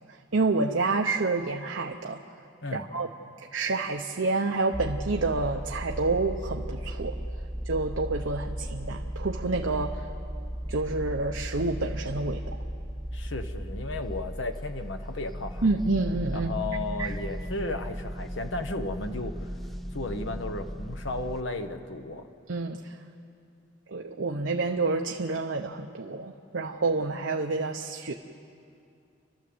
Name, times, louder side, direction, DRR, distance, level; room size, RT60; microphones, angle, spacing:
voice 1, 0.3-2.2 2.7-3.1 3.5-7.2 7.6-10.1 10.7-12.6 15.6-16.5 17.0-17.1 22.5-23.0 23.9-28.1, right 3 dB, 75° right, 3 dB, 0.8 m, -28 dB
sound 1, 4.7-21.4, equal, ahead, 0.5 m, -36 dB
voice 2, 13.1-15.7 16.3-19.5 19.9-22.3, left 2 dB, 70° left, 7 dB, 1.2 m, -34 dB
30.0 x 12.0 x 7.9 m, 2.5 s
head